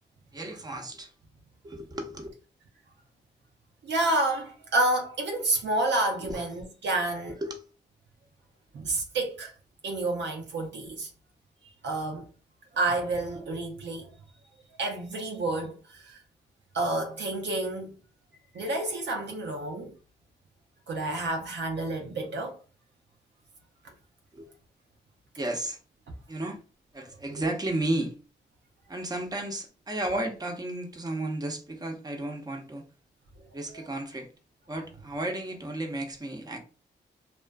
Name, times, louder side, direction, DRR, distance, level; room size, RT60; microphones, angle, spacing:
voice 1, 0.3-1.1 1.6-2.3 6.2-6.5 7.3-7.6 24.3-24.5 25.4-25.8 26.3-26.6 26.9-28.2 28.9-32.8 33.5-34.3 34.7-36.6, right 1 dB, 20° right, 0.7 m, -33 dB
voice 2, 3.8-7.4 8.7-9.5 9.8-11.1 11.8-12.3 12.7-14.1 14.8-16.2 16.7-18.0 18.5-19.9 20.9-22.6, right 2 dB, 75° right, 0.6 m, -29 dB
2.4 x 2.4 x 2.2 m
cardioid pair, 50°, 19 cm